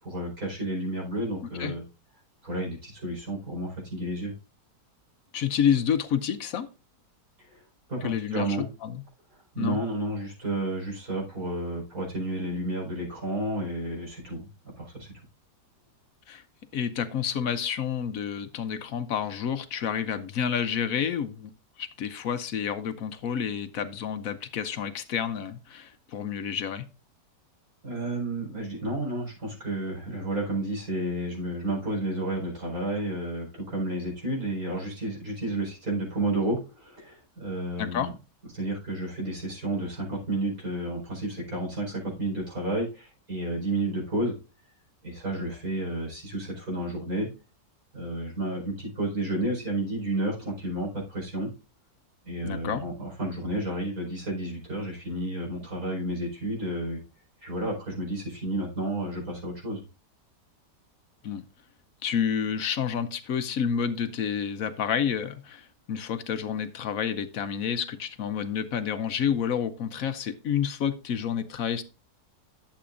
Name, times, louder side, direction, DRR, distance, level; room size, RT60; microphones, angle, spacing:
voice 1, 0.0-1.8 2.4-4.3 7.5-7.6 7.9-8.7 9.5-14.5 14.8-15.1 27.8-38.1 38.5-44.3 45.0-47.3 47.9-51.5 52.2-57.0 57.4-59.8, right 1 dB, 55° right, -1 dB, 5.0 m, -31 dB
voice 2, 5.3-6.7 8.0-9.0 9.6-9.8 16.3-16.4 16.7-21.5 21.8-26.9 37.8-38.1 52.4-52.8 61.2-61.4 62.0-71.8, left 8 dB, 60° left, 11 dB, 1.0 m, -29 dB
11.5 x 7.8 x 2.5 m, 0.31 s
omnidirectional pair, 1.8 m